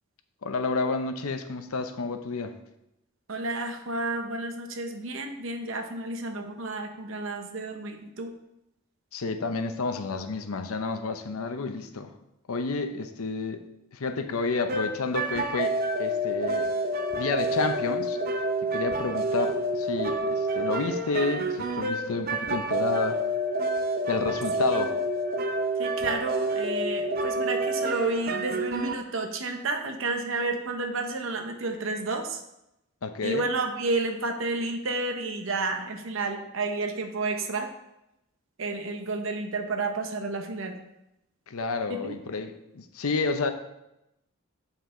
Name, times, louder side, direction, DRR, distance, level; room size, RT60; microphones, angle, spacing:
voice 1, 0.4-2.5 9.1-12.1 12.5-13.6 13.9-15.7 16.0-16.7 17.2-18.2 18.6-23.2 24.1-25.0 33.0-33.5 41.5-43.5, left 4 dB, 80° left, 8 dB, 0.7 m, -30 dB
voice 2, 3.3-8.3 24.7-24.9 25.8-32.4 33.2-37.7 38.6-40.8 41.9-42.2, right 3 dB, 60° right, 5 dB, 0.8 m, -31 dB
sound 1, 14.7-28.9, right 1 dB, 45° right, 0.6 m, -28 dB
7.4 x 5.7 x 3.8 m, 0.86 s
head